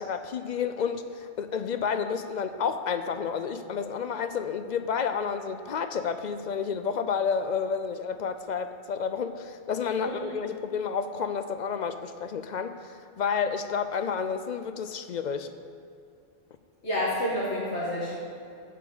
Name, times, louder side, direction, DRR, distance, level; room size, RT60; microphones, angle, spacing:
voice 1, 0.0-15.5, left 6 dB, 55° left, 9 dB, 0.5 m, -30 dB
voice 2, 10.0-10.3 16.8-18.2, left 1 dB, 75° left, -8 dB, 2.1 m, -29 dB
8.2 x 7.1 x 7.1 m, 2.6 s
omnidirectional pair, 1.1 m